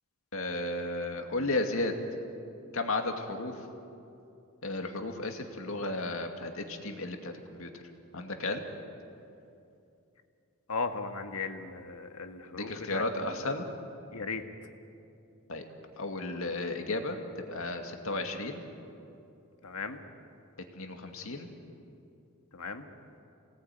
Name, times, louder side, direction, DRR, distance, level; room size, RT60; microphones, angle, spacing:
voice 1, 0.3-2.0 2.7-3.6 4.6-7.8 8.1-8.6 12.5-13.6 15.5-15.6 16.0-17.2 17.5-18.6 20.7-21.5, left 2 dB, 65° left, 4 dB, 2.4 m, -34 dB
voice 2, 10.7-13.5 14.1-14.4 19.6-20.0 22.5-22.9, left 4 dB, 85° left, 6 dB, 1.9 m, -37 dB
28.5 x 19.0 x 9.3 m, 2.7 s
head